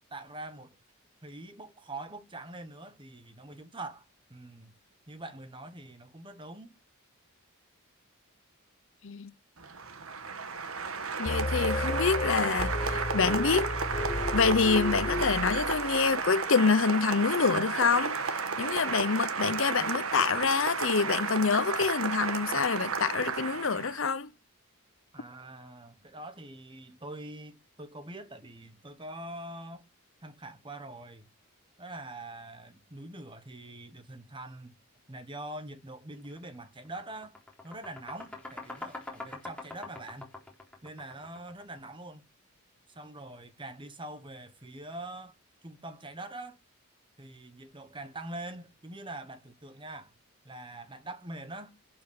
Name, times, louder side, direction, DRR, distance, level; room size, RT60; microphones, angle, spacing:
voice 1, 0.1-0.8 1.2-4.0 4.3-4.7 5.1-6.7 25.1-29.8 30.2-31.3 31.8-34.7 35.1-37.3 37.6-40.3 40.8-42.2 42.9-45.4 45.6-46.6 47.2-50.1 50.4-51.8, right 2 dB, 20° right, 1.2 m, -44 dB
Applause, 9.6-24.0, right 5 dB, 75° right, 1.4 m, -33 dB
voice 2, 11.2-13.7 14.3-18.2 18.6-24.3, left 5 dB, 60° left, 0.7 m, -26 dB
sound 1, 11.3-16.3, left 2 dB, 30° left, 0.8 m, -33 dB
sound 2, 36.2-36.4 36.8-41.7, left 2 dB, 5° left, 3.9 m, -44 dB
12.0 x 6.0 x 6.9 m
head